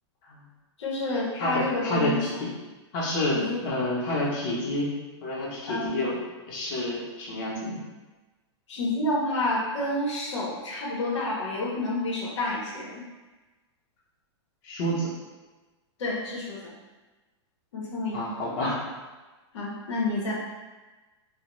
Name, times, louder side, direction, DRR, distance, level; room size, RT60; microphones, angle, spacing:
voice 1, 0.8-2.4 3.3-3.6 5.7-6.0 8.7-13.0 16.0-16.7 17.7-18.2 19.5-20.3, left 1 dB, 80° left, -4 dB, 0.8 m, -29 dB
voice 2, 1.4-2.3 2.9-4.9 5.2-6.1 6.5-7.8 14.6-15.1 18.1-18.8, left 1 dB, 45° left, -6 dB, 0.7 m, -28 dB
2.2 x 2.1 x 3.0 m, 1.2 s
supercardioid pair, 155°, 15 cm